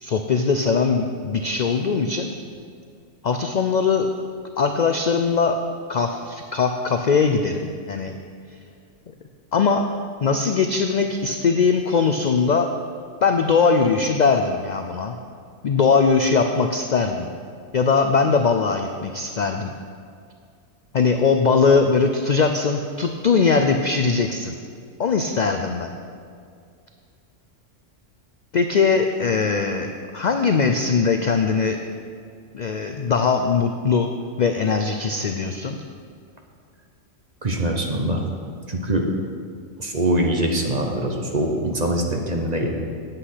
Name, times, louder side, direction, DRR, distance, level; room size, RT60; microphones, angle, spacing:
voice 1, 0.0-2.3 3.2-4.1 4.6-5.6 5.9-8.2 9.5-9.9 10.2-12.7 13.2-15.2 15.6-17.3 17.7-19.7 20.9-24.6 25.0-25.9 28.5-31.8 32.5-34.1 34.4-35.8, left 5 dB, 60° left, 6 dB, 0.4 m, -20 dB
voice 2, 37.4-38.2 38.7-39.1 39.8-42.8, right 1 dB, 35° right, 2 dB, 1.0 m, -23 dB
9.1 x 8.2 x 5.7 m, 2.3 s
omnidirectional pair, 1.3 m